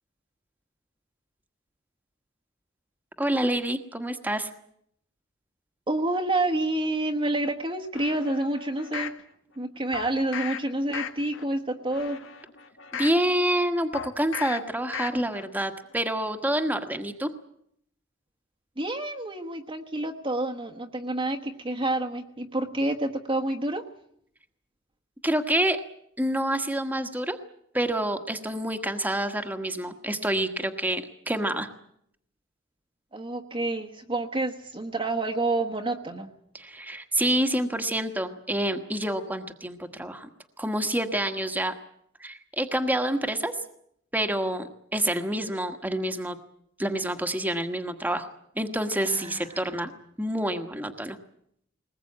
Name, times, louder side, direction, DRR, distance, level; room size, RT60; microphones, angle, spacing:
voice 1, 3.2-4.5 12.9-17.3 25.2-25.8 26.2-27.4 27.7-31.7 36.5-40.3 40.6-41.7 42.2-43.5 44.1-46.4 46.8-48.3 48.5-49.9 50.2-51.2, right 1 dB, 10° right, 6 dB, 1.4 m, -27 dB
voice 2, 5.9-9.1 9.6-12.2 18.8-23.8 33.1-36.3 49.0-49.4, right 2 dB, 25° right, 2 dB, 1.3 m, -28 dB
sound 1, 7.9-9.2 9.9-10.6 10.9-11.4 11.9-13.2 13.9-14.6 14.9-15.4 15.8-15.9, left 7 dB, 75° left, 1.9 m, -36 dB
22.0 x 20.0 x 8.6 m, 0.71 s
head